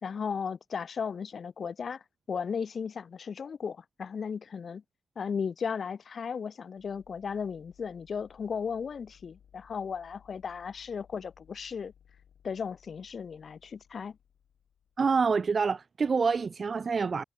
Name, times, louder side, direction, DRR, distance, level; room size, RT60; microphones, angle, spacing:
voice 1, 0.0-4.8 5.2-11.9 12.4-14.2, left 6 dB, 60° left, 1.0 m, -35 dB
sound 1, 6.8-15.5, left 8 dB, 90° left, 3.5 m, -62 dB
voice 2, 15.0-17.2, right 5 dB, 50° right, 0.4 m, -27 dB
cardioid pair, 95°, 0 cm